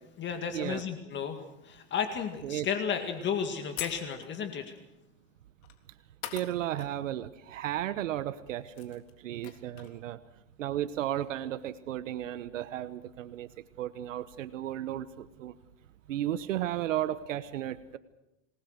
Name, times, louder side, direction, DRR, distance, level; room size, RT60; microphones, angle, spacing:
voice 1, 0.2-4.8, left 7 dB, 30° left, 6 dB, 2.2 m, -33 dB
sound 1, 3.1-3.2 3.8-4.5 5.6-5.8 6.2-6.9 7.2-7.3 8.3-8.4 8.6-10.0, left 12 dB, 55° left, 3.7 m, -43 dB
voice 2, 6.3-10.2 10.6-13.5 13.8-15.5 16.1-18.0, right 12 dB, 90° right, 13 dB, 1.1 m, -34 dB
27.5 x 19.5 x 6.5 m, 0.89 s
supercardioid pair, 125°, 37 cm